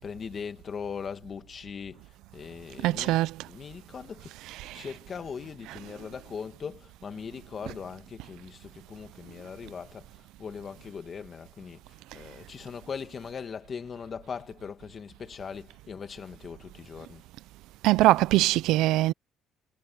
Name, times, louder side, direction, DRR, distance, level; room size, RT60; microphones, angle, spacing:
voice 1, 0.0-3.2 3.4-4.3 4.7-11.8 12.1-17.2, left 6 dB, 35° left, 2.1 m, -40 dB
voice 2, 2.8-3.3 17.8-19.1, right 17 dB, 80° right, 0.6 m, -21 dB
cardioid pair, 130°, 0 cm